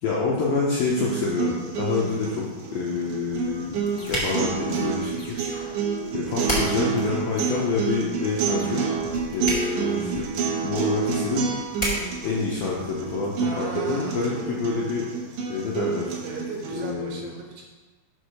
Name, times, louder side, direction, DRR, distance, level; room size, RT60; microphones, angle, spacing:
voice 1, 0.0-5.5 6.1-8.9 9.3-10.3 10.6-11.5 12.2-15.1 15.5-16.2 16.7-17.2, left 4 dB, 75° left, -5 dB, 2.2 m, -27 dB
sound 1, 0.9-16.9, right 6 dB, 90° right, 1.7 m, -29 dB
sound 2, 3.3-13.3, equal, 20° left, 1.3 m, -35 dB
sound 3, 4.0-4.7 5.2-5.9 6.4-7.1 7.4-8.0 8.6-9.3 9.6-10.3, left 1 dB, 50° left, 2.4 m, -44 dB
voice 2, 13.4-14.6 16.2-17.6, right 3 dB, 75° right, 0 dB, 2.7 m, -36 dB
6.5 x 5.0 x 6.4 m, 1.2 s
omnidirectional pair, 5.5 m